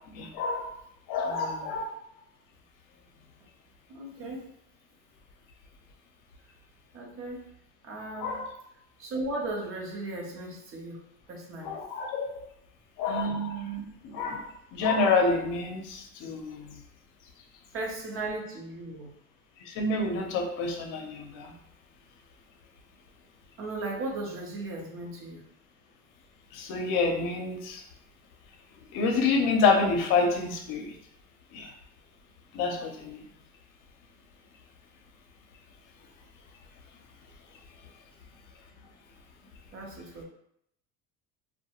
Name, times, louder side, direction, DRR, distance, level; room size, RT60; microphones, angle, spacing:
voice 1, 0.1-0.7 1.1-1.8 8.2-8.4 11.6-12.4 13.0-14.4 14.7-16.7 19.7-21.5 26.5-27.8 28.9-30.9 31.5-31.7 32.5-33.2, left 4 dB, 60° left, 3 dB, 0.7 m, -28 dB
voice 2, 1.2-1.7 3.9-4.4 6.9-7.5 7.8-8.4 9.0-11.0 11.3-11.8 17.7-19.1 23.6-25.4 39.7-40.2, right 2 dB, 40° right, -1 dB, 0.7 m, -36 dB
2.2 x 2.2 x 2.9 m, 0.73 s
supercardioid pair, 110°, 35 cm